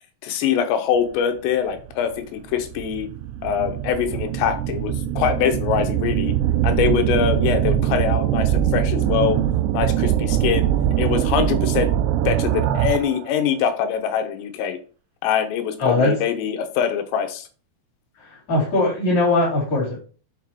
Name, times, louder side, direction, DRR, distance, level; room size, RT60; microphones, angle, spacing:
voice 1, 0.2-3.1 3.4-6.3 6.6-9.4 9.7-10.7 11.0-12.0 12.2-14.8 15.2-17.5, left 8 dB, 85° left, 7 dB, 3.1 m, -23 dB
sound 1, 1.8-1.9 2.6-13.2, right 11 dB, 85° right, 2.6 m, -22 dB
voice 2, 15.8-16.1 18.2-20.0, left 2 dB, 40° left, -5 dB, 4.5 m, -20 dB
8.2 x 4.1 x 4.4 m, 0.39 s
omnidirectional pair, 5.2 m